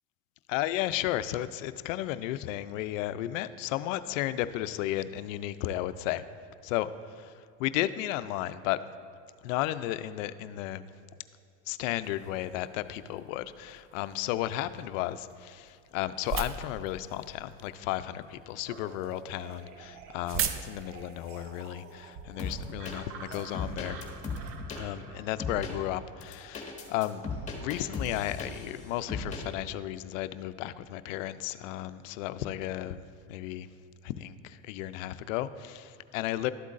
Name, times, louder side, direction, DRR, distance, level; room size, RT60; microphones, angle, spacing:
voice 1, 0.5-6.2 6.6-8.8 9.4-10.8 11.7-24.1 24.7-27.2 27.6-33.7 34.0-36.5, left 14 dB, 75° left, 13 dB, 0.5 m, -34 dB
sound 1, 12.0-24.6, right 7 dB, 35° right, 0.5 m, -42 dB
sound 2, 18.7-27.8, right 6 dB, 75° right, 0.9 m, -50 dB
sound 3, 22.4-23.0 23.3-24.8 25.4-25.7 26.2-28.8 29.1-29.4, left 4 dB, 20° left, 1.6 m, -36 dB
12.5 x 8.1 x 2.5 m, 2.4 s
supercardioid pair, 105°, 39 cm